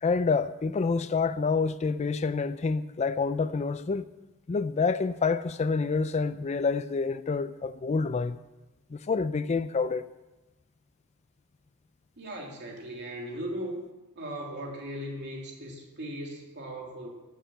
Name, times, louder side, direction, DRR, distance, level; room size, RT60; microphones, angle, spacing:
voice 1, 0.0-4.0 4.5-8.4 8.9-10.0, left 4 dB, 30° left, 0.4 m, -27 dB
voice 2, 12.2-13.8 14.1-17.1, right 1 dB, 50° right, 3.1 m, -38 dB
14.0 x 7.4 x 9.0 m
head